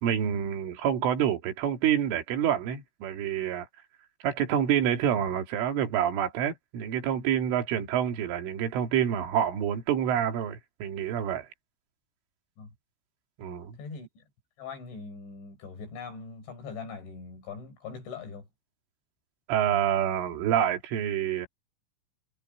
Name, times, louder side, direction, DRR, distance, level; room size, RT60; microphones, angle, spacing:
voice 1, 0.0-3.7 4.2-11.5 13.4-13.8 19.5-21.5, right 9 dB, 80° right, 5.2 m, -27 dB
voice 2, 13.8-14.2 14.6-18.5, left 5 dB, 65° left, 8.3 m, -41 dB
omnidirectional pair, 5.6 m